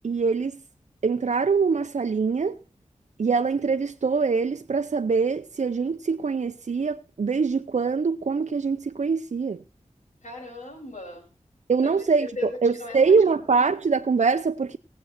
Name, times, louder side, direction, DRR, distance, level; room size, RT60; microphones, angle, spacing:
voice 1, 0.0-0.6 1.0-2.5 3.2-9.6 11.7-14.8, right 5 dB, 70° right, 0.6 m, -23 dB
voice 2, 10.2-11.2 11.8-11.9 12.2-13.4, left 3 dB, 80° left, 6.3 m, -37 dB
18.5 x 7.7 x 4.3 m
wide cardioid pair, 75°, 13 cm